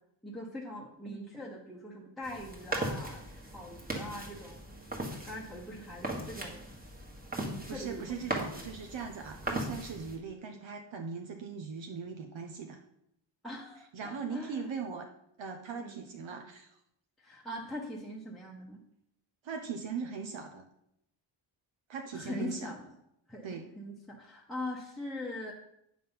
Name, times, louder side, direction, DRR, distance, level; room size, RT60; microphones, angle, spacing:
voice 1, 0.2-4.6 5.3-6.6 7.4-8.4 13.4-14.7 15.7-16.0 17.2-18.8 22.1-22.9 23.3-25.5, left 1 dB, ahead, -3 dB, 1.0 m, -42 dB
sound 1, 2.2-10.2, right 1 dB, 20° right, 1.6 m, -39 dB
voice 2, 7.7-12.8 13.9-15.1 15.4-16.8 19.4-20.6 21.9-22.7 23.4-23.7, right 5 dB, 75° right, 4 dB, 0.9 m, -40 dB
9.3 x 6.3 x 5.5 m, 0.79 s
wide cardioid pair, 180°, 46 cm